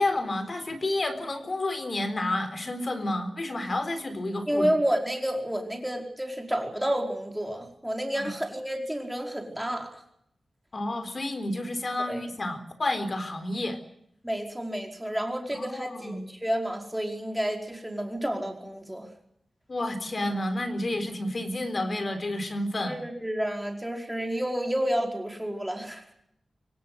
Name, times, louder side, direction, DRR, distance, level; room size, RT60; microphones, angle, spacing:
voice 1, 0.0-4.7 8.2-8.3 10.7-13.8 15.5-16.2 19.7-23.0, left 1 dB, 40° left, 9 dB, 3.8 m, -30 dB
voice 2, 4.5-10.0 12.1-12.2 14.2-19.1 22.8-26.1, equal, 5° right, 2 dB, 5.0 m, -30 dB
25.0 x 17.0 x 9.7 m, 0.72 s
wide cardioid pair, 130°, 0 cm